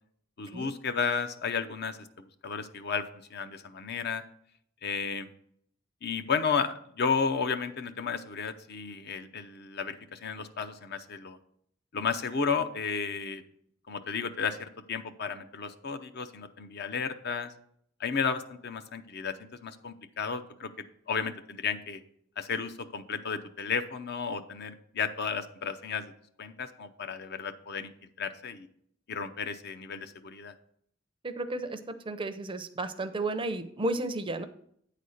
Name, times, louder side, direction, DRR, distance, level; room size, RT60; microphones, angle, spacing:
voice 1, 0.4-4.2 4.8-5.3 6.0-11.4 11.9-13.4 13.9-17.5 18.0-20.7 21.1-22.0 22.4-26.1 26.4-28.7 29.1-30.5, left 5 dB, 55° left, 9 dB, 0.6 m, -33 dB
voice 2, 31.2-31.8 32.1-34.5, right 2 dB, 25° right, 10 dB, 0.5 m, -33 dB
9.1 x 4.2 x 6.4 m, 0.67 s
head